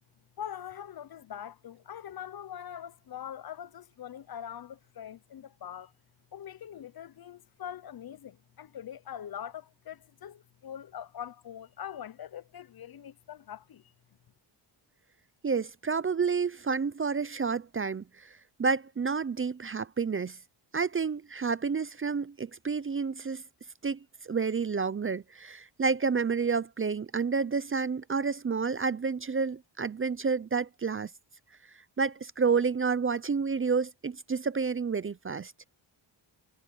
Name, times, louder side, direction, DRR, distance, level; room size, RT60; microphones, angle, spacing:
voice 1, 0.4-5.9 6.3-13.9, left 9 dB, 50° left, 0.7 m, -43 dB
voice 2, 15.4-20.4 20.7-23.4 23.8-31.1 32.0-35.5, right 5 dB, 25° right, 0.5 m, -30 dB
cardioid pair, 110°, 48 cm